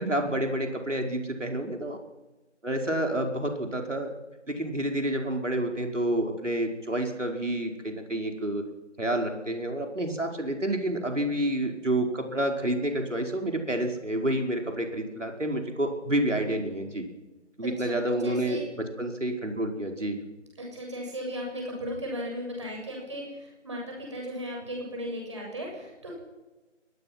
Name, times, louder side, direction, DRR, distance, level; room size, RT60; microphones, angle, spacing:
voice 1, 0.0-2.0 2.6-4.1 4.5-8.6 9.0-17.0 17.6-20.2, right 1 dB, 80° right, 3 dB, 5.1 m, -29 dB
voice 2, 17.9-18.6 20.6-26.1, equal, 25° right, -1 dB, 7.5 m, -36 dB
24.0 x 20.5 x 6.1 m, 1.1 s
figure-of-eight pair, 170°, 36 cm